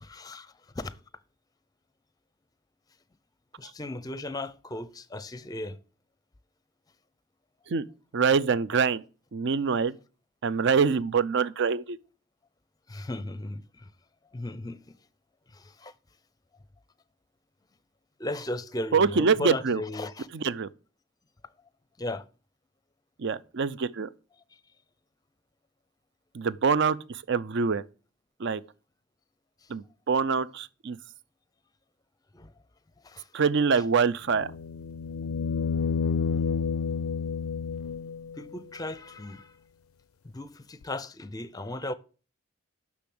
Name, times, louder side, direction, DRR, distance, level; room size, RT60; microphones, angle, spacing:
voice 1, 0.0-1.0 3.6-5.8 12.9-13.9 14.3-15.0 15.5-15.9 18.2-20.3 22.0-22.3 32.3-32.5 33.0-33.3 38.4-39.5 40.2-41.9, left 2 dB, 20° left, 0.5 m, -36 dB
voice 2, 8.1-9.0 9.3-10.0 10.4-12.0 18.9-19.8 20.3-20.7 23.2-24.1 26.3-27.8 28.4-28.6 29.7-31.0 33.3-34.5, right 5 dB, 55° right, 0.5 m, -25 dB
sound 1, 34.3-38.4 40.8-40.9, left 6 dB, 85° left, 0.4 m, -30 dB
6.9 x 6.2 x 7.7 m
head